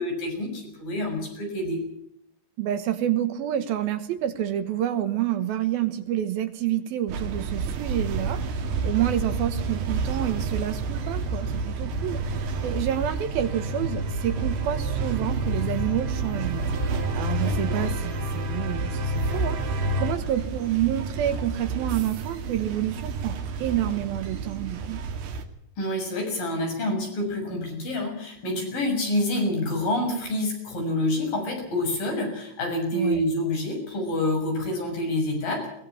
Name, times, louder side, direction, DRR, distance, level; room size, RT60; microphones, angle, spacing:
voice 1, 0.0-1.8 25.8-35.8, left 1 dB, 55° left, 3 dB, 8.3 m, -27 dB
voice 2, 2.6-16.6 17.1-25.0 32.9-33.2, right 11 dB, 70° right, 10 dB, 2.9 m, -28 dB
sound 1, 7.1-25.5, right 5 dB, 90° right, 4.3 m, -30 dB
sound 2, 7.3-20.1, left 2 dB, 50° right, 3.7 m, -33 dB
22.0 x 20.0 x 7.1 m, 0.73 s
omnidirectional pair, 4.6 m